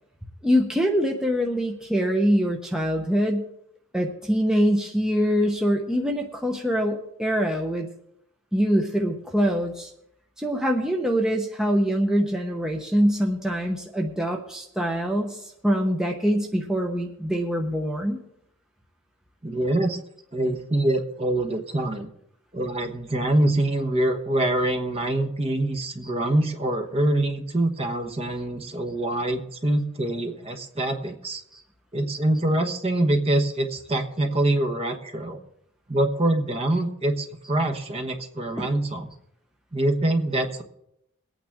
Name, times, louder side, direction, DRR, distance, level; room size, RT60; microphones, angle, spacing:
voice 1, 0.4-3.5 3.9-7.9 8.5-9.9 10.4-18.2 26.0-26.1 31.5-31.6 38.6-38.7, equal, 5° right, 0 dB, 0.9 m, -24 dB
voice 2, 19.4-20.0 20.3-22.1 22.5-31.4 31.9-35.4 35.9-39.1 39.7-40.6, right 1 dB, 25° right, 5 dB, 1.1 m, -25 dB
22.5 x 9.0 x 3.6 m, 0.77 s
head